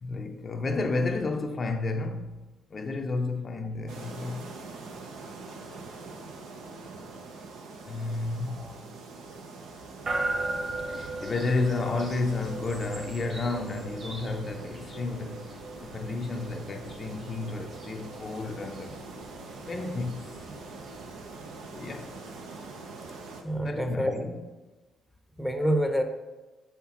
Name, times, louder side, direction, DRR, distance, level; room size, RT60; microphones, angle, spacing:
voice 1, 0.0-2.4 2.7-4.5 7.8-8.8 10.9-19.1 19.7-20.3 21.7-22.2 23.6-24.4, left 3 dB, 40° left, 0.5 m, -32 dB
sound 1, 3.9-23.4, right 3 dB, 90° right, 0.7 m, -44 dB
sound 2, 10.1-23.0, right 2 dB, 55° right, 2.0 m, -39 dB
voice 2, 23.4-24.1 25.4-26.0, equal, ahead, 0.7 m, -27 dB
6.4 x 5.7 x 2.9 m
cardioid pair, 90°, 0 cm